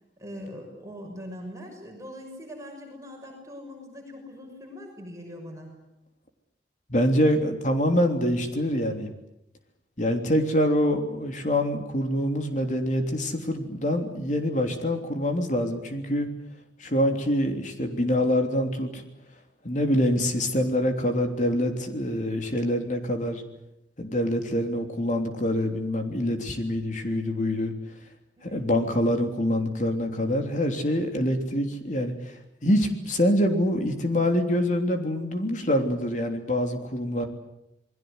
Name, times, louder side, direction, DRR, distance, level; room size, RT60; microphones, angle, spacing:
voice 1, 0.2-5.7 28.4-28.6, equal, 15° right, 1 dB, 6.3 m, -41 dB
voice 2, 6.9-9.1 10.0-16.3 16.8-19.0 19.6-23.4 24.0-27.7 28.4-32.3 32.6-37.2, equal, 45° left, 5 dB, 3.2 m, -25 dB
28.5 x 21.0 x 8.1 m, 0.83 s
head